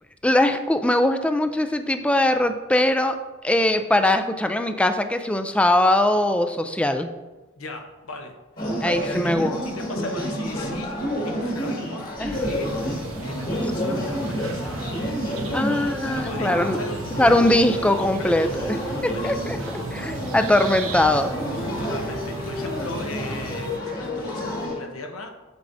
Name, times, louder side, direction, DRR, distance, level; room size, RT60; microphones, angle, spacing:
voice 1, 0.2-3.2 3.4-7.1 8.8-9.6 12.2-12.4 15.5-16.8 17.2-18.8 19.0-19.6 19.9-21.3, left 1 dB, 5° left, 8 dB, 0.3 m, -21 dB
voice 2, 7.6-8.3 8.8-14.9 15.3-15.7 16.1-17.4 17.9-20.1 21.5-25.3, left 2 dB, 90° left, 4 dB, 0.9 m, -38 dB
sound 1, 8.6-24.8, equal, 45° left, 1.8 m, -30 dB
sound 2, 12.3-23.8, right 2 dB, 75° right, 0.8 m, -35 dB
8.0 x 6.9 x 2.6 m, 1.2 s
head